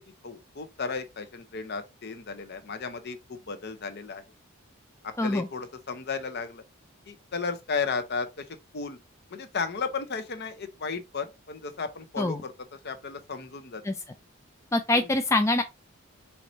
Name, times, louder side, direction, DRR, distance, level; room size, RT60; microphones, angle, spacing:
voice 1, 0.2-4.2 5.0-6.6 7.1-8.3 8.7-9.0 9.3-12.5 12.8-13.8, left 5 dB, 50° left, 0.7 m, -34 dB
voice 2, 14.7-15.6, left 2 dB, 15° left, 0.3 m, -24 dB
4.6 x 4.2 x 2.7 m
head